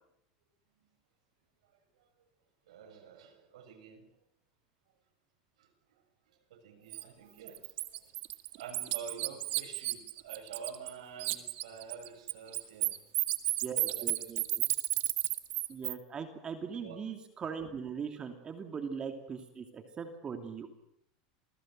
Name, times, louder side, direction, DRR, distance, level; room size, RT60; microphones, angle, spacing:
voice 1, 2.7-4.0 5.6-6.0 6.3-8.0 8.6-12.9 13.9-14.6 16.8-17.0, right 6 dB, 85° right, 5 dB, 7.0 m, -48 dB
Bird, 6.9-7.0 7.5-10.9 11.2-15.9, right 20 dB, 55° right, 2.1 m, -32 dB
voice 2, 13.6-14.4 15.7-20.7, right 6 dB, 25° right, 6 dB, 2.9 m, -40 dB
28.0 x 20.0 x 7.8 m, 0.74 s
supercardioid pair, 130°, 3 cm